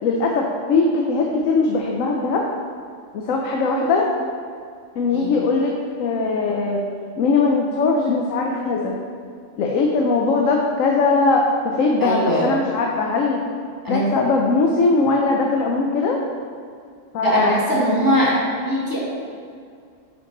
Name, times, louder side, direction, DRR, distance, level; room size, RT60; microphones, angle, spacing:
voice 1, 0.0-2.4 3.1-4.1 5.0-5.7 6.0-6.8 7.2-9.0 9.6-13.4 13.9-16.2 17.1-17.5, left 3 dB, 75° left, 0 dB, 1.1 m, -20 dB
voice 2, 12.0-12.5 13.8-14.0 17.2-18.4 18.6-19.0, equal, 15° left, -7 dB, 1.9 m, -20 dB
10.0 x 4.7 x 3.9 m, 2.2 s
omnidirectional pair, 1.4 m